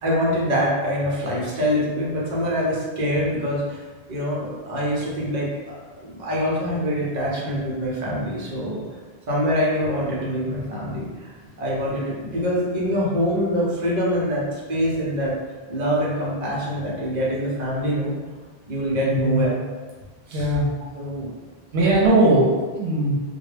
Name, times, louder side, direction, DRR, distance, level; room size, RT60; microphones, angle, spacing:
voice 1, 0.0-8.8 9.3-15.4 15.7-18.1 18.7-19.5 20.3-20.5 20.9-21.3, equal, 50° right, -5 dB, 0.7 m, -25 dB
voice 2, 19.0-19.5 20.3-20.7 21.7-23.2, right 1 dB, 80° right, -4 dB, 0.9 m, -19 dB
2.2 x 2.1 x 3.2 m, 1.3 s
omnidirectional pair, 1.1 m